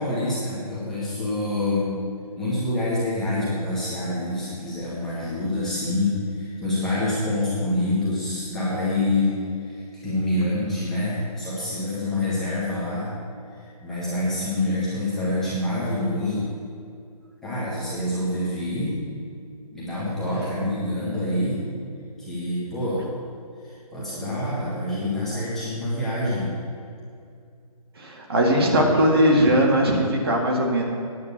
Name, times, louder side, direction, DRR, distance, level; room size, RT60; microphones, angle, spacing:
voice 1, 0.0-1.9 2.4-13.1 13.5-16.5 17.4-19.0 19.7-21.6 22.2-23.0 23.6-26.5, left 1 dB, ahead, -11 dB, 1.6 m, -26 dB
voice 2, 28.0-30.8, equal, 40° right, -1 dB, 1.9 m, -19 dB
9.5 x 7.7 x 8.5 m, 2.4 s
hypercardioid pair, 170°, 20 cm